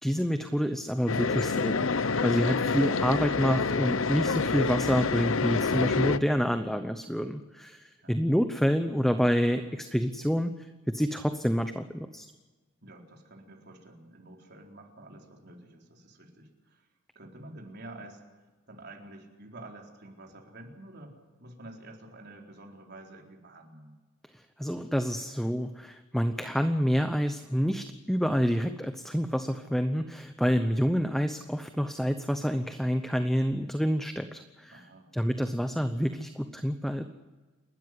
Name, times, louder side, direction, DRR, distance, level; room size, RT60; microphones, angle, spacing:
voice 1, 0.0-12.3 24.6-34.8 35.1-37.0, equal, ahead, 8 dB, 0.8 m, -28 dB
sound 1, 1.1-6.2, left 4 dB, 65° left, 0.7 m, -27 dB
voice 2, 12.8-16.9 17.1-18.2 18.7-24.0 34.7-35.1, right 2 dB, 50° right, 1 dB, 4.2 m, -49 dB
29.0 x 13.0 x 9.8 m, 1.2 s
head